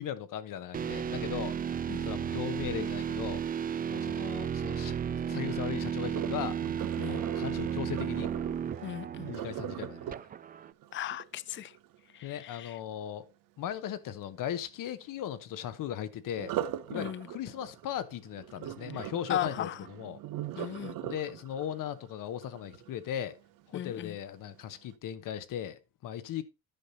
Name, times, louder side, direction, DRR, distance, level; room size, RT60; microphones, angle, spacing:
voice 1, 0.0-3.4 3.9-5.0 5.3-6.6 7.0-8.3 9.2-10.2 12.2-13.3 13.6-16.5 16.9-20.2 20.6-20.8 21.0-23.3 23.7-26.4, left 10 dB, 65° left, 1.0 m, -38 dB
sound 1, 0.7-10.7, right 8 dB, 25° right, 0.3 m, -34 dB
Sink (filling or washing), 6.0-12.0 16.3-23.4 23.9-24.2 24.7-24.8, right 11 dB, 75° right, 0.7 m, -41 dB
voice 2, 8.8-9.3 10.9-11.7 12.1-12.8 16.9-17.3 19.3-19.8 20.6-20.9 23.7-24.2, left 11 dB, 35° left, 0.4 m, -36 dB
10.0 x 5.5 x 4.1 m
cardioid pair, 100°, 34 cm